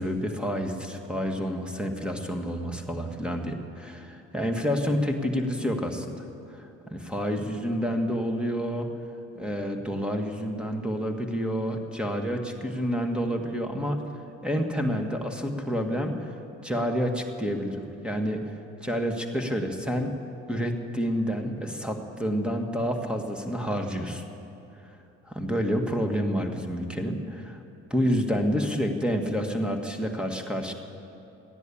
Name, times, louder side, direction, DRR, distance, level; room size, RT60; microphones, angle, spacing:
voice 1, 0.0-6.2 6.5-8.9 9.4-14.0 14.4-16.1 16.6-18.5 18.8-20.1 20.5-24.2 25.3-27.6 27.9-30.7, equal, 5° right, 3 dB, 1.8 m, -29 dB
14.5 x 10.5 x 8.6 m, 2.9 s
supercardioid pair, 70°, 29 cm